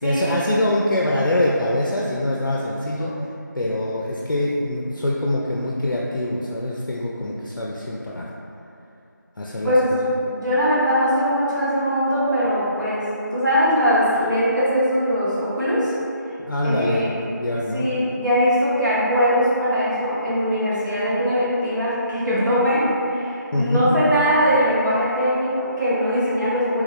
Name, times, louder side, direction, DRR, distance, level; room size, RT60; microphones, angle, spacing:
voice 1, 0.0-3.2 3.5-8.3 9.4-10.0 16.4-17.9 23.5-23.9, left 1 dB, 85° left, -4 dB, 0.4 m, -24 dB
voice 2, 10.2-15.9 16.6-17.1 17.7-26.8, equal, 65° right, -10 dB, 1.0 m, -21 dB
3.4 x 2.1 x 3.1 m, 2.7 s
figure-of-eight pair, 175°, 10 cm